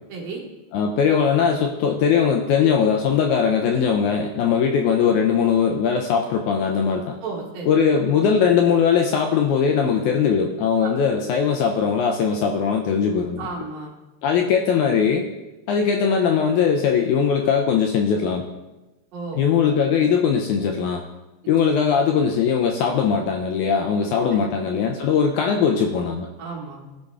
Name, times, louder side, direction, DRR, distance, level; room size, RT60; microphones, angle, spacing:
voice 1, 0.1-0.4 7.2-7.7 10.8-10.9 13.4-13.9 19.1-19.4 24.3-24.5 26.4-26.8, right 4 dB, 85° right, -2 dB, 3.1 m, -33 dB
voice 2, 0.7-7.2 7.7-13.5 14.2-15.2 15.7-18.4 19.4-21.0 21.5-26.3, left 6 dB, 80° left, 2 dB, 1.7 m, -20 dB
15.0 x 5.1 x 2.4 m, 1.1 s
omnidirectional pair, 3.9 m